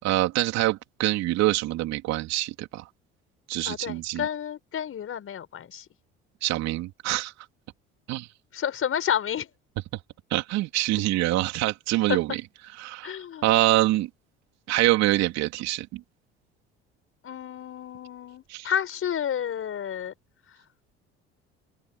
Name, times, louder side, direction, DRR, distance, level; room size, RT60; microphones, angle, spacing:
voice 1, 0.0-2.8 3.5-4.2 6.4-7.3 8.1-8.3 10.3-12.4 12.8-13.2 13.4-14.1 14.7-16.0 18.5-18.7, right 17 dB, 65° right, 3.4 m, -25 dB
voice 2, 3.6-5.9 8.5-9.5 12.1-12.2 13.0-13.5 17.2-20.1, left 9 dB, 50° left, 6.0 m, -30 dB
open air
hypercardioid pair, 65°, 29 cm